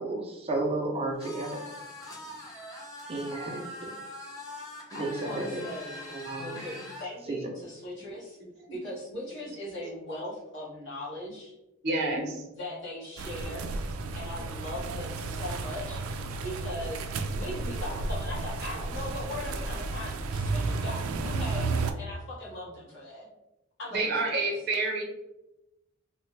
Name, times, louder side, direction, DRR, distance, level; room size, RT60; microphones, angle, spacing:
voice 1, 0.0-1.6 3.1-3.9 5.0-5.6 6.1-6.5 7.3-7.4, right 2 dB, 30° right, 0 dB, 0.5 m, -32 dB
sound 1, 1.2-7.1, left 1 dB, 15° left, 0.7 m, -43 dB
voice 2, 4.9-8.4 8.7-11.5 12.5-17.1 17.3-23.3 23.8-24.5, left 1 dB, 65° left, -7 dB, 1.4 m, -40 dB
voice 3, 11.8-12.4 23.9-25.0, right 2 dB, 55° right, 0 dB, 0.8 m, -28 dB
sound 2, 13.2-21.9, right 3 dB, 85° right, 0.3 m, -32 dB
3.2 x 2.2 x 3.1 m, 0.94 s
head